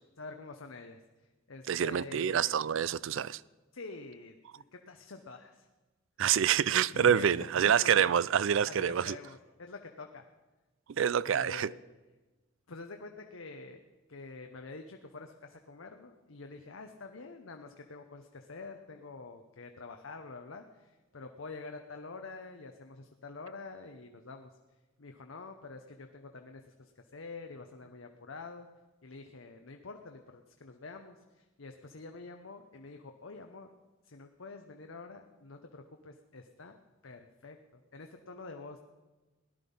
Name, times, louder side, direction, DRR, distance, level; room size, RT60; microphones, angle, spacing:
voice 1, 0.2-1.0 1.5-2.7 3.7-5.7 6.9-8.1 8.6-10.2 10.9-11.8 12.7-13.8 14.1-24.5 25.0-28.7 29.0-33.7 34.0-36.8 37.0-38.8, left 3 dB, 80° left, 0.9 m, -47 dB
voice 2, 1.7-3.4 6.2-9.2 11.0-11.7, right 8 dB, 70° right, 0.4 m, -27 dB
17.5 x 11.5 x 5.5 m
head